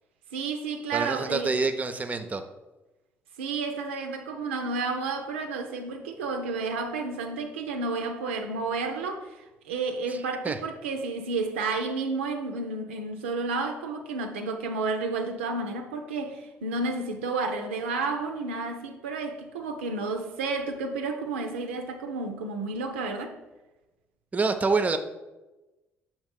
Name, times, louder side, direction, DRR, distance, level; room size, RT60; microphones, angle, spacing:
voice 1, 0.3-1.6 3.4-23.4, right 3 dB, 80° right, 0.4 m, -31 dB
voice 2, 0.9-2.4 10.4-10.6 24.3-25.0, right 4 dB, 25° right, 0.6 m, -26 dB
6.4 x 3.0 x 5.3 m
figure-of-eight pair, 45°, 6 cm